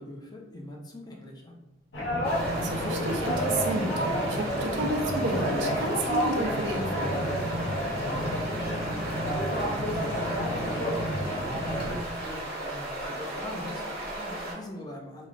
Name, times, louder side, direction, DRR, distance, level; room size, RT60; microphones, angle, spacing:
voice 1, 0.0-1.5 8.1-8.9 9.4-15.3, left 1 dB, 20° left, 0 dB, 0.4 m, -42 dB
sound 1, 1.9-12.0, equal, 85° left, 0.7 m, -30 dB
sound 2, 2.2-14.5, right 1 dB, 55° right, 1.0 m, -36 dB
sound 3, 2.3-10.0, equal, 35° right, 0.7 m, -45 dB
voice 2, 2.6-7.2, right 2 dB, 80° right, 3 dB, 0.5 m, -31 dB
3.0 x 2.3 x 2.5 m, 0.90 s
head